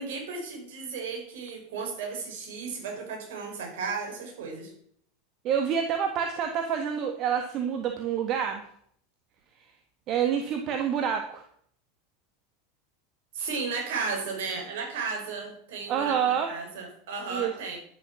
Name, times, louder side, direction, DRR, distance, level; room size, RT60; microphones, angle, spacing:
voice 1, 0.0-4.7 13.3-17.8, right 4 dB, 60° right, 1 dB, 5.3 m, -34 dB
voice 2, 5.4-8.6 10.1-11.4 15.9-16.5 17.3-17.5, right 8 dB, 40° right, 4 dB, 1.8 m, -27 dB
11.0 x 10.5 x 6.1 m, 0.64 s
figure-of-eight pair, 80°, 0 cm